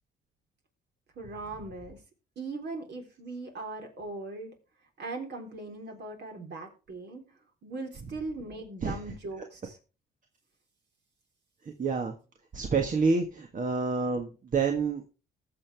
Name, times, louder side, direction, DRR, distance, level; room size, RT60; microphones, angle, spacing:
voice 1, 1.2-2.0 2.4-4.6 5.0-7.3 7.6-9.8, right 3 dB, 60° right, 2 dB, 3.8 m, -39 dB
voice 2, 11.8-12.1 12.5-15.0, right 4 dB, 40° right, 4 dB, 1.5 m, -28 dB
20.0 x 7.0 x 3.4 m, 0.35 s
cardioid pair, 90°, 20 cm